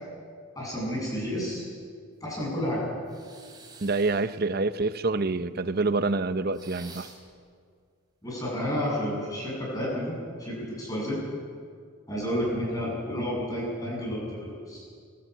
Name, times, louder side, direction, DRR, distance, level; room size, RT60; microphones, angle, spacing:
voice 1, 0.5-1.6 2.2-2.8 8.2-11.2 12.1-14.8, equal, 15° left, -5 dB, 7.9 m, -31 dB
sound 1, 3.1-4.4 6.5-7.4, right 4 dB, 20° right, 3.4 m, -49 dB
voice 2, 3.8-7.1, right 3 dB, 45° right, 13 dB, 0.7 m, -27 dB
24.5 x 15.5 x 8.3 m, 2.1 s
head